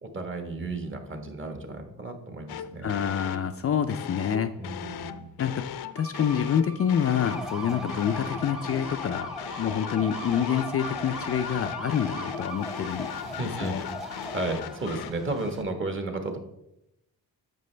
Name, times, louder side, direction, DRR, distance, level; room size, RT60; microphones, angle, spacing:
voice 1, 0.0-2.9 4.6-5.3 9.8-10.0 13.1-16.4, right 2 dB, 30° right, 5 dB, 1.3 m, -34 dB
sound 1, 2.5-3.5 3.9-7.5 7.9-15.1, left 9 dB, 80° left, 0.6 m, -38 dB
voice 2, 2.8-4.5 5.4-5.6 5.9-13.1 13.6-13.8, left 8 dB, 40° left, 7 dB, 0.4 m, -27 dB
Bowed string instrument, 6.0-13.2, right 2 dB, 85° right, 3.3 m, -44 dB
sound 2, 7.1-15.6, left 1 dB, ahead, 0.9 m, -38 dB
10.5 x 7.4 x 3.3 m, 0.83 s
cardioid pair, 135°, 37 cm